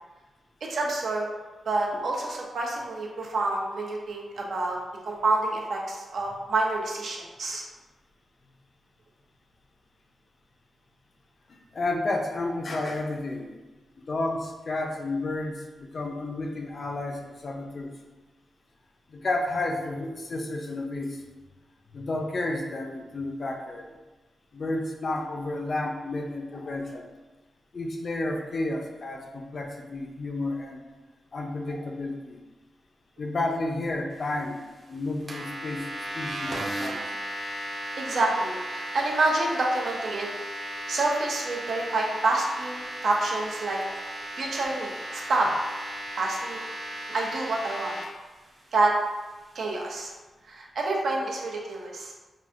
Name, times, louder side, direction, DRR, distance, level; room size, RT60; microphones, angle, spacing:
voice 1, 0.7-1.3 1.7-4.8 5.0-7.6 31.7-31.8 38.0-40.3 40.9-43.8 44.4-45.5 46.2-48.0 48.7-48.9 49.5-50.1 50.5-52.1, right 2 dB, 65° right, -2 dB, 0.7 m, -28 dB
voice 2, 11.7-13.5 14.0-17.9 19.1-21.2 21.9-23.9 24.5-27.1 27.7-30.8 31.3-32.4 33.2-34.6 34.9-35.9 36.1-37.0 43.9-44.0 44.4-44.7, left 2 dB, 45° left, 2 dB, 0.5 m, -31 dB
sound 1, 35.3-48.0, right 1 dB, 40° right, 0.8 m, -36 dB
5.5 x 2.5 x 2.4 m, 1.2 s
wide cardioid pair, 125°, 0 cm